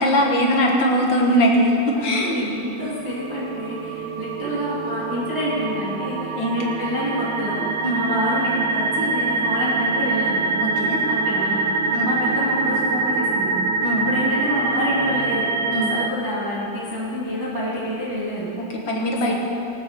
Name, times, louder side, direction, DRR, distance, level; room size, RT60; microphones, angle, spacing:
voice 1, 0.0-2.4 6.3-6.8 7.8-8.0 10.6-11.0 11.9-12.1 13.8-14.1 15.7-15.9 18.6-19.3, equal, 50° left, 0 dB, 1.6 m, -21 dB
voice 2, 1.9-10.4 11.1-11.6 12.0-13.5 14.0-15.4 15.9-18.5 19.3-19.4, equal, 10° right, -7 dB, 1.7 m, -27 dB
sound 1, 2.9-16.1, right 3 dB, 80° right, 2.1 m, -24 dB
18.5 x 7.0 x 6.8 m, 2.8 s
omnidirectional pair, 3.6 m